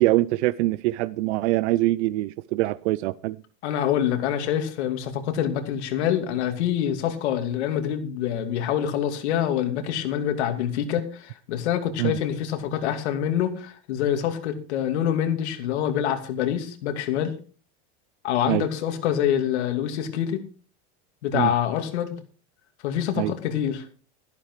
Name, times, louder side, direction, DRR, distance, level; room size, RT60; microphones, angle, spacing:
voice 1, 0.0-3.4 12.0-12.1 18.5-18.6 21.3-21.5 23.2-23.3, right 18 dB, 80° right, 0.5 m, -23 dB
voice 2, 3.6-17.3 18.2-20.4 21.2-22.2 22.8-23.8, left 10 dB, 85° left, 2.8 m, -26 dB
13.5 x 11.5 x 4.7 m
supercardioid pair, 160°, 33 cm